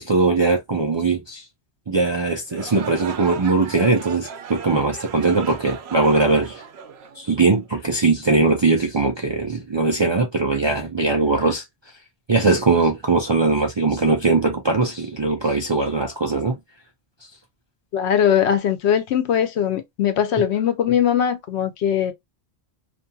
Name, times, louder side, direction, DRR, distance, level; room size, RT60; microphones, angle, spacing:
voice 1, 0.0-1.4 1.9-6.6 7.2-11.6 12.3-16.6, right 3 dB, 45° right, 0.3 m, -20 dB
sound 1, 2.5-7.7, right 7 dB, 80° right, 0.8 m, -37 dB
voice 2, 17.9-22.1, left 9 dB, 90° left, 0.9 m, -20 dB
2.5 x 2.3 x 2.6 m
omnidirectional pair, 1.1 m